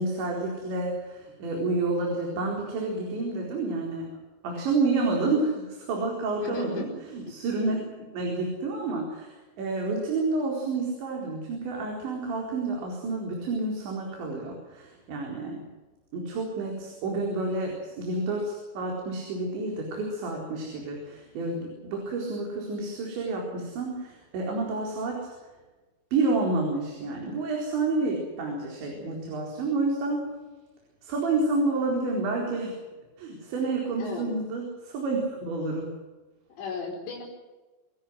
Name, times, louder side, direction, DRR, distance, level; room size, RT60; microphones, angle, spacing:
voice 1, 0.0-4.1 4.4-7.8 8.1-15.7 16.1-25.2 26.1-30.2 31.0-32.7 33.2-35.9, right 3 dB, 85° right, 0 dB, 6.6 m, -29 dB
voice 2, 6.4-6.9 7.7-7.8 34.0-34.3 36.5-37.2, left 5 dB, 80° left, -1 dB, 6.9 m, -36 dB
27.0 x 17.5 x 7.9 m, 1.2 s
omnidirectional pair, 5.0 m